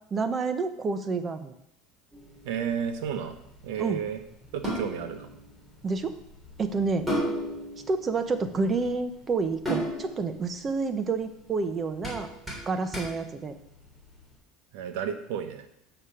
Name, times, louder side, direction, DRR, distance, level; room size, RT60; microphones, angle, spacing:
voice 1, 0.1-1.5 3.8-4.0 5.8-6.1 6.6-7.1 7.9-12.3 12.7-13.5, right 4 dB, 25° right, 9 dB, 0.8 m, -29 dB
sound 1, 2.1-14.2, right 1 dB, 5° right, 3.1 m, -37 dB
voice 2, 2.4-3.3 3.6-4.2 4.5-5.3 14.7-15.7, right 8 dB, 80° right, 8 dB, 1.1 m, -32 dB
6.8 x 6.4 x 5.7 m, 0.77 s
cardioid pair, 145°, 0 cm